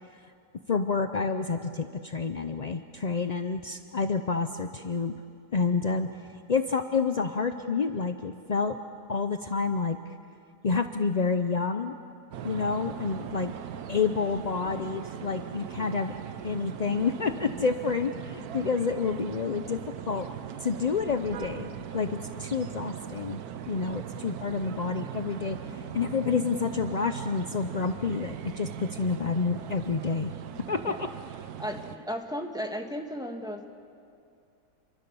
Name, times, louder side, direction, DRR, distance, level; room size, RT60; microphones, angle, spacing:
voice 1, 0.7-5.1 5.5-6.1 6.5-8.8 9.1-10.0 10.6-11.9 12.4-13.5 13.9-16.1 16.4-20.3 20.6-23.4 23.7-30.3 30.7-31.1, left 5 dB, 50° left, 8 dB, 0.4 m, -29 dB
sound 1, 12.3-32.0, right 9 dB, 70° right, 1.3 m, -39 dB
voice 2, 31.6-33.7, equal, 5° right, 4 dB, 1.6 m, -35 dB
29.0 x 24.0 x 7.0 m, 2.5 s
omnidirectional pair, 1.7 m